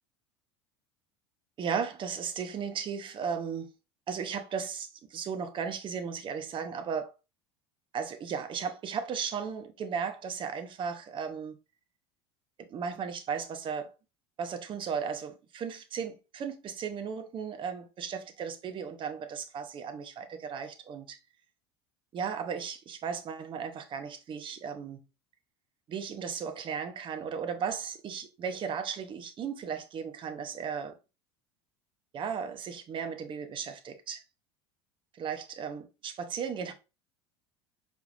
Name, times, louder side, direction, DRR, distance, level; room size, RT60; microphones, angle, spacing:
voice 1, 1.6-3.7 4.1-7.1 7.9-11.6 12.7-13.9 14.4-21.2 22.1-25.0 25.9-31.0 32.1-34.2 35.1-36.7, right 6 dB, 35° right, 0.8 m, -35 dB
4.8 x 3.4 x 2.5 m
hypercardioid pair, 75°, 15 cm